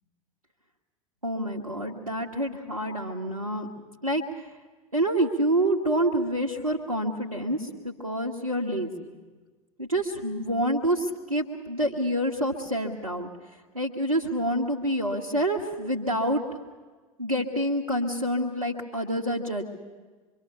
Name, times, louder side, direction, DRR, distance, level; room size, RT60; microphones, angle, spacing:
voice 1, 1.2-3.7 4.0-4.2 4.9-9.1 9.8-13.3 13.7-16.4 17.2-19.7, right 1 dB, 85° right, -2 dB, 1.6 m, -27 dB
24.5 x 24.0 x 7.0 m, 1.4 s
figure-of-eight pair, 85°, 18 cm